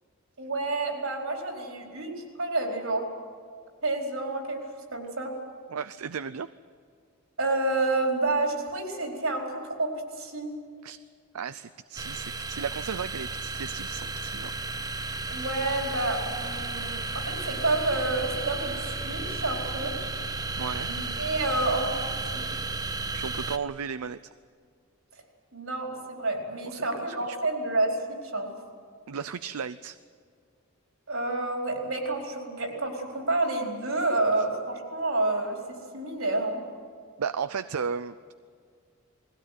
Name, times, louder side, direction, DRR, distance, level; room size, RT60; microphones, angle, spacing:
voice 1, 0.4-3.0 3.8-4.6 4.9-5.3 7.4-9.9 10.2-10.5 15.3-20.0 20.8-22.0 22.3-22.4 25.5-28.5 31.1-35.6 35.9-36.6, right 2 dB, 70° right, 1 dB, 4.5 m, -29 dB
voice 2, 5.7-6.5 10.8-11.0 11.3-14.5 20.6-20.9 23.1-24.2 26.7-27.4 29.1-30.0 37.2-38.3, right 6 dB, 90° right, 13 dB, 0.5 m, -35 dB
sound 1, 12.0-23.6, right 3 dB, 15° right, 0.6 m, -33 dB
21.0 x 16.5 x 9.4 m, 2.1 s
head